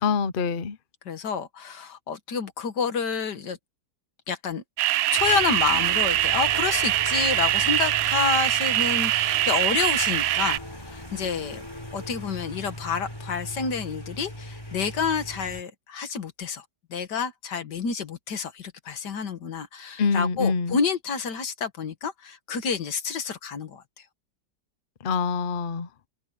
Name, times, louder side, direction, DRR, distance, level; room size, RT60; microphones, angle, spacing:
voice 1, 0.0-0.8 20.0-20.8 25.0-25.9, left 5 dB, 45° left, 0.7 m, -25 dB
voice 2, 1.1-3.6 4.3-4.6 5.1-11.6 11.9-16.6 16.9-23.8, left 5 dB, 75° left, 2.1 m, -29 dB
sound 1, 4.8-10.6, right 15 dB, 70° right, 0.9 m, -23 dB
sound 2, 5.2-15.6, left 1 dB, 15° left, 4.2 m, -39 dB
open air
omnidirectional pair, 1.8 m